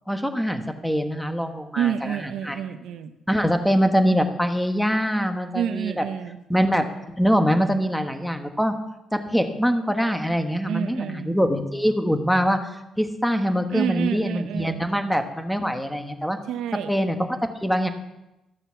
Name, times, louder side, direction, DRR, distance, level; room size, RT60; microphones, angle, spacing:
voice 1, 0.1-2.6 3.3-6.0 6.5-6.9 7.2-8.7 9.1-12.7 13.0-16.4 16.9-17.3 17.6-17.9, equal, ahead, 7 dB, 1.2 m, -23 dB
voice 2, 1.8-3.1 5.5-6.4 10.6-11.4 13.7-14.8 16.5-16.9, right 9 dB, 80° right, 9 dB, 0.6 m, -28 dB
13.5 x 6.9 x 5.8 m, 0.96 s
cardioid pair, 90°, 0 cm